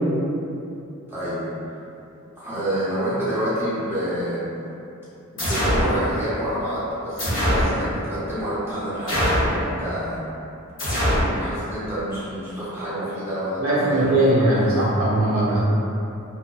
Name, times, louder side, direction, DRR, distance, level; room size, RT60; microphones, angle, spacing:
voice 1, 1.1-1.4 2.4-4.4 5.3-10.2 11.3-14.7, equal, 10° right, -12 dB, 0.7 m, -28 dB
sound 1, 5.4-5.9 7.2-7.7 9.1-9.6 10.8-11.3, equal, 65° left, 0.9 m, -21 dB
voice 2, 13.6-15.6, right 1 dB, 80° right, -9 dB, 0.8 m, -20 dB
2.6 x 2.0 x 2.3 m, 2.7 s
head